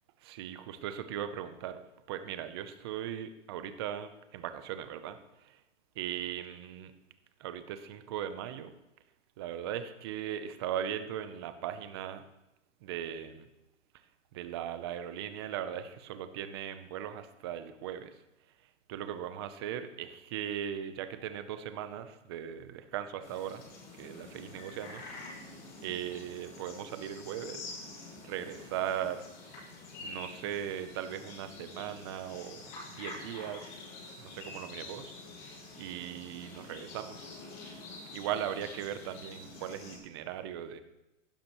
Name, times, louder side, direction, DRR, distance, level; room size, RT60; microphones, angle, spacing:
voice 1, 0.2-1.8 2.1-5.6 6.0-6.9 7.4-8.7 9.4-12.2 12.8-13.5 14.3-18.1 18.9-23.6 24.0-25.5 25.8-27.8 28.2-29.6 30.0-32.6 32.9-33.8 34.2-37.3 38.1-40.8, right 10 dB, 20° right, 10 dB, 0.6 m, -38 dB
sound 1, 23.2-40.0, left 3 dB, 40° left, 5.3 m, -47 dB
15.5 x 12.0 x 3.0 m, 0.94 s
hypercardioid pair, 155°, 37 cm